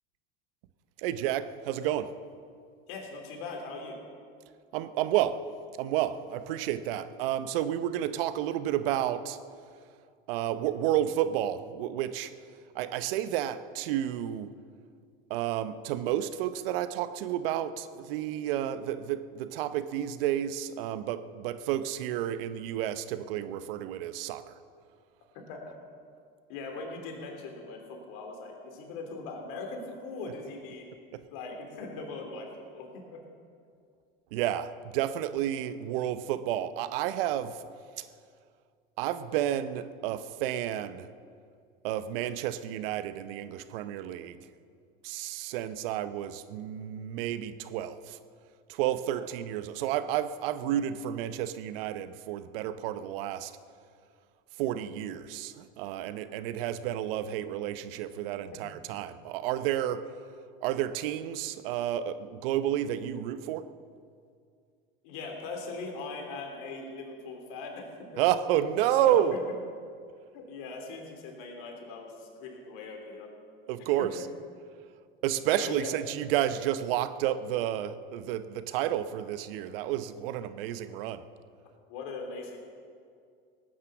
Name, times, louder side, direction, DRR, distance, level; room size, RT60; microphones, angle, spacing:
voice 1, 1.0-2.1 4.7-5.5 5.8-9.4 10.3-12.3 12.7-14.5 15.3-24.5 31.1-31.2 34.3-37.6 38.0-38.1 39.0-41.1 41.8-44.4 45.0-48.2 48.7-53.5 54.6-60.1 60.6-63.7 68.2-69.4 73.7-74.2 75.2-81.2, right 11 dB, 70° right, 0.8 m, -31 dB
voice 2, 2.9-4.0 25.5-25.8 26.5-30.9 31.3-33.2 49.1-49.3 58.5-58.6 65.0-68.2 69.0-69.4 70.3-73.3 74.0-74.2 75.6-76.0 81.9-82.6, left 3 dB, 65° left, 3.5 m, -40 dB
17.5 x 9.6 x 7.0 m
hypercardioid pair, 90°, 29 cm